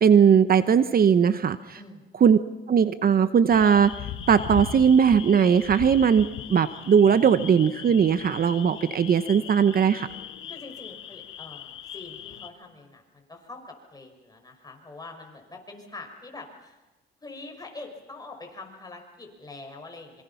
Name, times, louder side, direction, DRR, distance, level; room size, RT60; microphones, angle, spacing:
voice 1, 0.0-1.8 2.2-2.4 2.7-10.1, right 7 dB, 50° right, 12 dB, 1.0 m, -19 dB
sound 1, 3.5-12.5, left 10 dB, 75° left, 1.7 m, -39 dB
voice 2, 10.5-16.8 17.2-20.2, left 3 dB, 20° left, 3 dB, 6.2 m, -44 dB
26.5 x 24.5 x 5.8 m, 1.1 s
cardioid pair, 90°, 20 cm